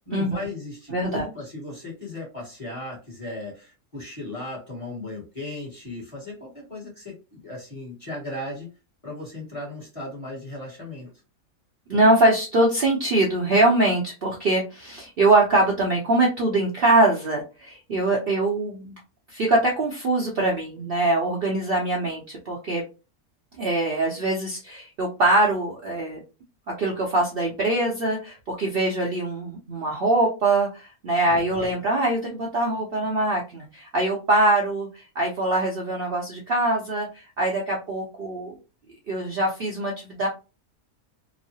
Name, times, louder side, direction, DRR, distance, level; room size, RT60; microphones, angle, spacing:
voice 1, 0.0-8.7 9.0-11.1 31.3-31.7, left 2 dB, 25° left, -3 dB, 1.2 m, -36 dB
voice 2, 0.9-1.3 11.9-18.9 19.3-22.8 23.6-26.2 26.8-38.6 39.1-40.3, right 2 dB, 55° right, -1 dB, 0.7 m, -23 dB
3.0 x 2.0 x 2.7 m, 0.30 s
omnidirectional pair, 1.5 m